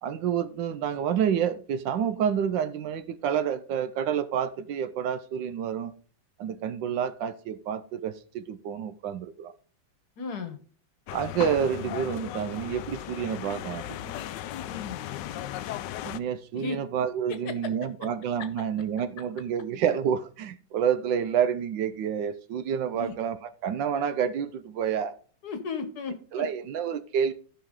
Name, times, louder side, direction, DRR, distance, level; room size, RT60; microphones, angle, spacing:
voice 1, 0.0-5.9 6.4-9.5 11.1-14.1 16.0-25.2 26.3-27.3, right 8 dB, 70° right, 1.3 m, -29 dB
voice 2, 10.2-10.6 14.6-15.0 16.5-16.8 17.3-17.5 22.9-23.1 25.4-26.4, left 5 dB, 55° left, 1.4 m, -35 dB
sound 1, 11.1-16.2, left 12 dB, 75° left, 1.1 m, -36 dB
14.0 x 5.7 x 3.6 m
omnidirectional pair, 2.2 m